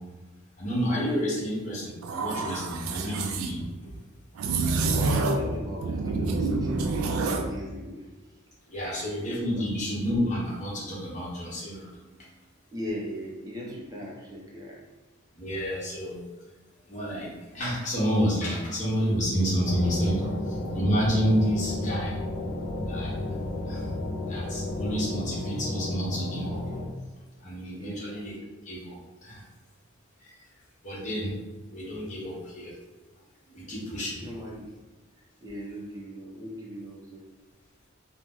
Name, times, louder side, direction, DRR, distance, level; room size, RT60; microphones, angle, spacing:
voice 1, 0.6-3.9 8.7-11.9 15.4-16.2 16.9-17.3 17.5-22.1 22.8-23.2 23.7-23.9 24.3-26.6 27.4-28.3 28.6-29.4 30.2-30.4 30.8-31.3 31.7-32.7 33.5-34.2, equal, 35° left, -6 dB, 0.9 m, -29 dB
sound 1, 2.0-3.5 4.4-5.5 5.8-7.5, right 3 dB, 90° right, 0.3 m, -27 dB
voice 2, 4.9-8.3 8.7-9.7 12.7-14.8 20.2-20.3 27.7-28.1 34.2-34.7 35.4-37.3, equal, 15° right, -3 dB, 0.5 m, -39 dB
sound 2, 19.6-26.9, left 1 dB, 75° left, 0.6 m, -32 dB
2.8 x 2.0 x 3.5 m, 1.2 s
head